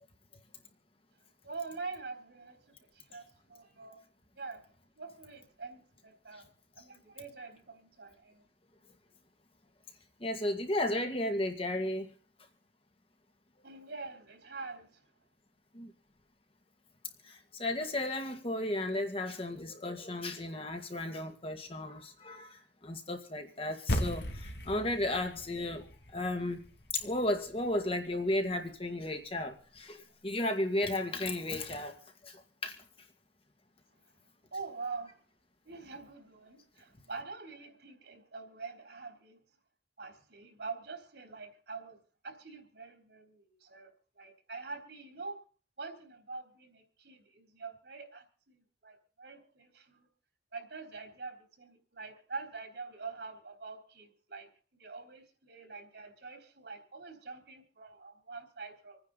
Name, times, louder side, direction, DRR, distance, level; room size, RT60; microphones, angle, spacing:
voice 1, 1.4-4.0 4.4-4.7 5.0-6.5 6.8-8.4 13.6-15.0 34.5-35.2 35.6-39.4 40.0-45.4 45.8-50.1 50.5-59.0, right 4 dB, 70° right, 4 dB, 3.7 m, -45 dB
voice 2, 10.2-12.1 15.7-15.9 17.3-25.9 26.1-26.6 26.9-32.0 32.2-32.8, left 1 dB, 35° left, 5 dB, 2.0 m, -34 dB
sound 1, 23.9-28.4, equal, 75° left, 2.2 m, -38 dB
27.0 x 9.8 x 4.0 m, 0.40 s
head